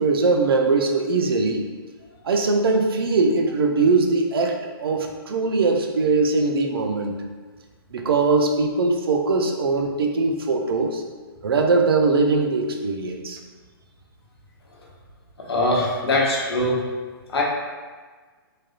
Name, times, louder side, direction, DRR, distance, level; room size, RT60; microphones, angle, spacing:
voice 1, 0.0-1.6 2.2-7.2 7.9-11.0 11.4-13.4, right 3 dB, 70° right, 3 dB, 0.5 m, -21 dB
voice 2, 15.4-16.8 17.3-17.4, left 1 dB, 85° left, -3 dB, 0.9 m, -22 dB
3.2 x 2.6 x 2.4 m, 1.4 s
hypercardioid pair, 180°, 13 cm